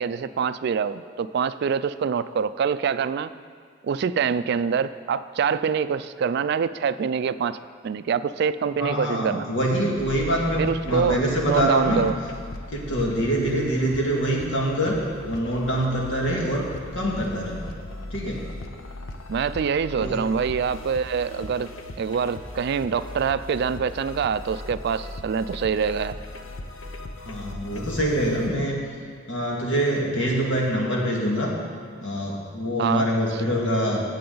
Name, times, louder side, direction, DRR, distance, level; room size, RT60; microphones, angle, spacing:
voice 1, 0.0-3.3 3.8-7.6 7.8-9.5 10.6-11.2 11.4-12.2 19.3-21.7 22.0-26.2 32.8-33.1, right 6 dB, 55° right, 14 dB, 0.3 m, -25 dB
voice 2, 8.7-12.0 12.7-16.6 16.9-17.6 18.1-18.5 19.9-20.2 27.2-28.8 29.3-31.5 32.0-34.0, equal, 70° left, -2 dB, 2.0 m, -25 dB
sound 1, 10.0-28.6, left 2 dB, 90° left, 0.8 m, -38 dB
15.5 x 7.7 x 3.9 m, 2.1 s
head